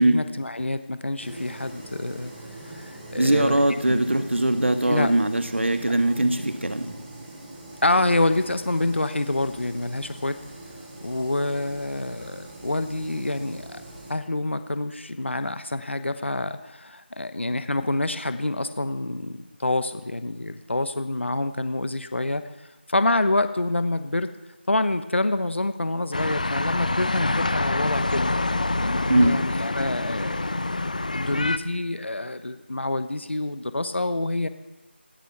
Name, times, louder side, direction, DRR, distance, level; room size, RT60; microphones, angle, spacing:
voice 1, 0.0-2.3 2.7-3.6 3.9-4.1 4.9-5.1 5.8-5.9 7.8-10.4 11.0-13.8 14.1-24.3 24.7-28.3 28.8-30.5 31.1-34.5, left 2 dB, 80° left, 10 dB, 1.0 m, -27 dB
sound 1, 1.2-14.1, right 1 dB, ahead, 0.5 m, -43 dB
voice 2, 3.1-6.9 29.1-29.4, right 1 dB, 85° right, 8 dB, 1.6 m, -21 dB
sound 2, 26.1-31.6, left 2 dB, 40° left, 0.7 m, -26 dB
17.0 x 11.5 x 5.9 m, 1.1 s
figure-of-eight pair, 175°, 6 cm